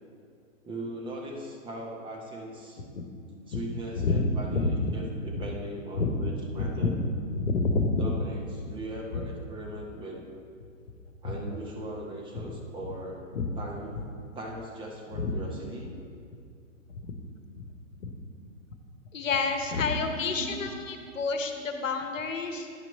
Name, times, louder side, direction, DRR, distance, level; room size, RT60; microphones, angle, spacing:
voice 1, 0.6-2.8 3.5-7.0 8.0-10.2 11.2-13.3 13.5-14.0 14.3-15.9 19.8-21.0, right 1 dB, 10° right, -1 dB, 0.7 m, -39 dB
voice 2, 4.5-5.0 6.0-6.3 6.6-7.0 7.3-8.1 9.1-9.2 12.3-12.4 13.3-13.5 15.2-15.3 17.0-17.1 18.0-18.1 19.1-22.7, left 3 dB, 70° left, 6 dB, 1.0 m, -28 dB
10.0 x 6.0 x 4.4 m, 2.3 s
figure-of-eight pair, 115°, 40 cm